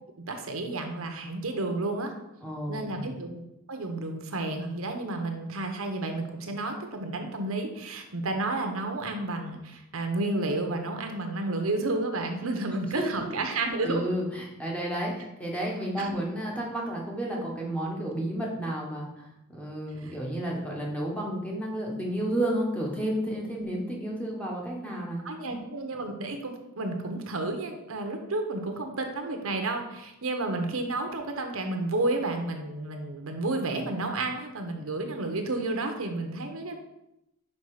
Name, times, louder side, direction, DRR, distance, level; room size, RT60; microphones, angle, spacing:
voice 1, 0.2-2.1 2.7-3.4 3.7-14.0 16.0-16.1 20.0-20.1 25.2-36.7, right 2 dB, 75° right, 4 dB, 1.0 m, -31 dB
voice 2, 2.4-3.1 12.9-13.0 13.8-25.2, right 1 dB, 5° left, -2 dB, 1.3 m, -31 dB
5.5 x 5.1 x 4.9 m, 0.87 s
head